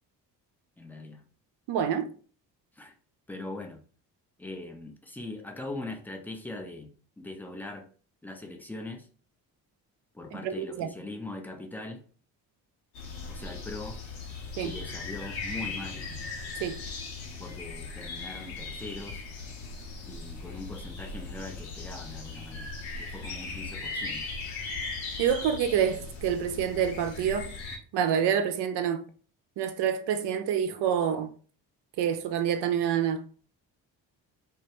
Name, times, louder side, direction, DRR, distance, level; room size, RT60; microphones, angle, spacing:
voice 1, 0.8-1.2 2.7-2.9 3.3-3.8 4.4-7.9 8.2-9.1 10.1-12.0 13.3-14.0 14.6-16.1 17.4-19.2 20.1-24.3, left 2 dB, 5° left, 0.4 m, -41 dB
voice 2, 1.7-2.1 10.3-10.9 14.6-14.7 16.6-16.8 25.2-27.5 27.9-29.0 29.6-31.3 32.0-33.2, right 8 dB, 55° right, 0.5 m, -27 dB
sound 1, 12.9-27.8, left 3 dB, 80° left, 0.8 m, -38 dB
2.2 x 2.1 x 2.9 m
hypercardioid pair, 45°, 49 cm